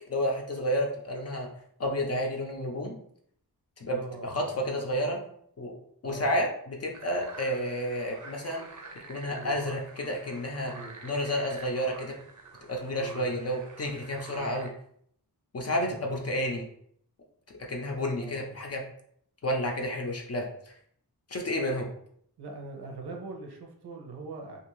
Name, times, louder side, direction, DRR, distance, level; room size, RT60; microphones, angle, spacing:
voice 1, 0.1-1.5 1.8-2.9 3.8-5.2 5.6-5.7 6.0-8.6 9.1-10.7 11.0-12.1 12.7-14.7 15.5-16.6 17.7-18.8 19.4-20.5 21.3-21.9, equal, 40° left, 1 dB, 0.5 m, -30 dB
voice 2, 3.9-4.6 6.0-6.4 9.3-9.6 10.7-11.0 12.9-13.3 14.3-14.6 15.8-16.1 18.1-18.5 22.4-24.6, right 3 dB, 80° right, 2 dB, 0.7 m, -42 dB
sound 1, 6.9-14.7, right 3 dB, 50° right, 0.5 m, -47 dB
2.6 x 2.4 x 3.0 m, 0.66 s
wide cardioid pair, 145°, 39 cm